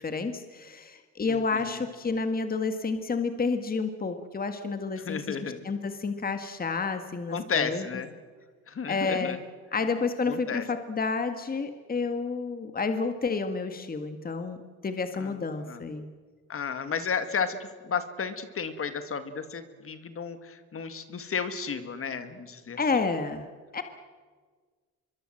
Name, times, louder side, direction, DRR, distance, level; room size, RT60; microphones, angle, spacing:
voice 1, 0.0-7.9 8.9-9.4 9.7-14.6 14.8-16.1 22.8-23.8, left 4 dB, 30° left, 8 dB, 1.7 m, -30 dB
voice 2, 1.3-1.8 5.1-5.6 7.3-8.1 8.7-9.4 10.3-10.6 15.2-15.8 16.5-22.8, left 6 dB, 45° left, 10 dB, 2.0 m, -33 dB
25.0 x 23.0 x 7.7 m, 1.5 s
cardioid pair, 90°, 30 cm